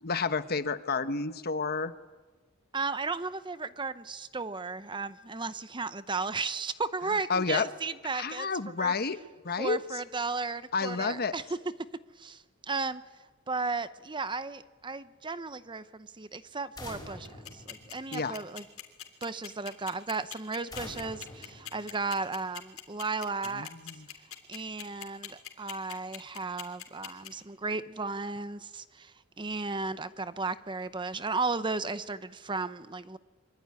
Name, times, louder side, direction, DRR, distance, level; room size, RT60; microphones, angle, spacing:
voice 1, 0.0-1.9 7.3-7.7 8.1-9.2 9.4-9.8 10.7-11.3 18.1-18.4 23.5-24.0, left 4 dB, 45° left, 11 dB, 1.1 m, -30 dB
voice 2, 2.7-8.5 8.8-8.9 9.6-11.4 12.2-13.0 13.5-18.6 19.2-23.7 24.5-33.2, right 4 dB, 20° right, 13 dB, 0.8 m, -35 dB
sound 1, 16.8-18.6 20.7-22.5, left 1 dB, 20° left, 5.7 m, -46 dB
sound 2, 17.3-27.3, left 11 dB, 75° left, 3.4 m, -41 dB
24.5 x 24.5 x 9.7 m, 1.3 s
head